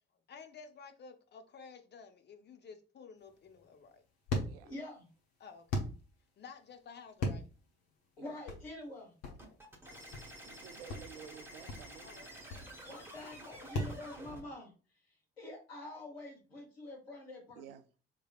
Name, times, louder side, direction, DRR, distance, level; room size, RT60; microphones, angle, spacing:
voice 1, 0.3-4.0 5.4-5.9 6.4-7.5 9.2-9.6 12.0-12.9, left 5 dB, 35° left, 0.7 m, -53 dB
sound 1, 3.2-14.0, left 1 dB, 55° left, 1.1 m, -40 dB
voice 2, 4.6-5.1 8.2-9.1 12.8-14.7 15.4-17.7, left 1 dB, 85° left, 1.0 m, -46 dB
sound 2, 9.4-14.4, right 1 dB, 10° right, 1.2 m, -50 dB
voice 3, 10.5-12.3 17.6-17.9, right 9 dB, 75° right, 0.5 m, -52 dB
3.8 x 3.2 x 2.4 m
figure-of-eight pair, 45°, 30 cm